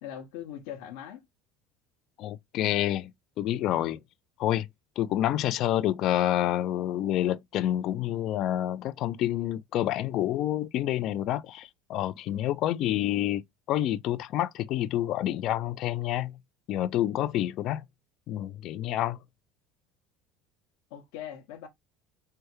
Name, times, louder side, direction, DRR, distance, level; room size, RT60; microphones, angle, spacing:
voice 1, 0.0-1.2 20.9-21.7, left 10 dB, 80° left, 0.8 m, -40 dB
voice 2, 2.2-3.1 3.4-4.0 4.4-4.7 5.0-13.4 13.7-16.4 16.7-17.9 18.3-19.2, left 13 dB, 55° left, 0.3 m, -28 dB
3.3 x 2.2 x 3.0 m
supercardioid pair, 115°, 0 cm